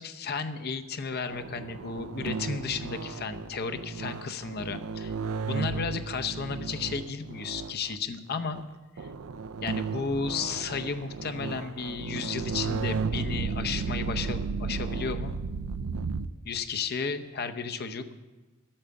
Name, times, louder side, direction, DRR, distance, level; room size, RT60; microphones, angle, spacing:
voice 1, 0.0-5.1 5.4-8.6 9.0-9.1 9.6-15.3 16.4-18.0, left 5 dB, 50° left, 8 dB, 0.7 m, -33 dB
sound 1, 1.3-7.9 8.5-8.6 9.0-16.3, right 4 dB, 85° right, 0.5 m, -34 dB
12.0 x 8.8 x 7.0 m, 1.2 s
head